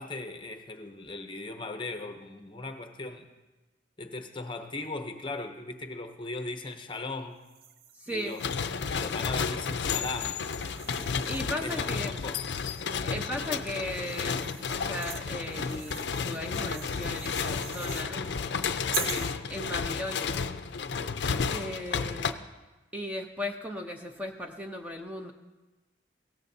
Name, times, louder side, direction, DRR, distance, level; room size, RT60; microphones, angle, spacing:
voice 1, 0.0-3.3 4.0-7.4 8.1-8.5 8.9-10.4 11.6-12.4 18.9-19.4 22.0-22.3, left 3 dB, 25° left, 6 dB, 0.7 m, -38 dB
sound 1, 7.4-13.0 13.6-18.1 18.9-19.4, right 9 dB, 50° right, 0.5 m, -44 dB
voice 2, 8.0-8.4 11.3-12.2 13.0-18.2 19.5-20.4 21.5-22.4 22.9-25.3, left 1 dB, 10° right, 3 dB, 0.6 m, -37 dB
sound 2, 8.4-22.3, left 5 dB, 70° left, 0.5 m, -32 dB
16.5 x 14.5 x 2.7 m, 1.1 s
head